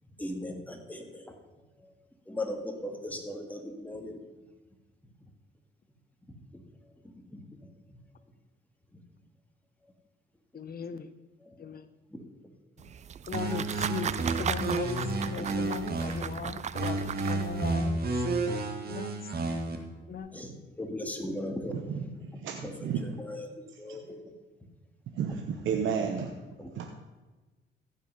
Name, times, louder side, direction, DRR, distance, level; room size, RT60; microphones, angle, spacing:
voice 1, 0.2-1.2 1.8-1.9 2.3-4.2 7.3-7.4 15.3-15.4 20.3-21.7 22.6-24.2 25.2-25.4 26.6-26.7, left 1 dB, 10° left, 3 dB, 1.9 m, -38 dB
voice 2, 10.5-11.1 11.6-11.9 13.3-18.0 18.9-19.1 20.1-20.3, left 6 dB, 50° left, 11 dB, 0.9 m, -38 dB
sound 1, 12.8-17.7, right 8 dB, 35° right, 0.4 m, -37 dB
sound 2, 13.3-16.3 16.7-19.8, right 2 dB, 50° right, 1.7 m, -31 dB
voice 3, 22.4-23.0 25.2-26.3 26.8-26.9, right 7 dB, 75° right, 3 dB, 1.0 m, -31 dB
15.0 x 5.7 x 5.6 m, 1.2 s
cardioid pair, 90°, 20 cm